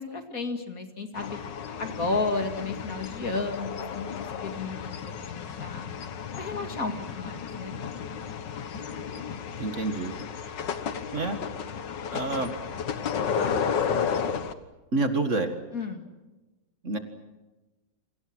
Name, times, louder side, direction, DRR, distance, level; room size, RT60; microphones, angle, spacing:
voice 1, 0.0-1.4 1.8-5.0 5.3-5.9 6.3-7.8 15.7-16.1, left 3 dB, 50° left, 6 dB, 2.8 m, -32 dB
sound 1, 1.2-14.5, left 7 dB, 75° left, 2.0 m, -33 dB
voice 2, 9.6-10.1 11.1-11.4 12.1-12.5 14.9-15.6 16.8-17.0, right 3 dB, 45° right, 7 dB, 2.1 m, -27 dB
28.5 x 25.5 x 6.2 m, 1.1 s
omnidirectional pair, 1.9 m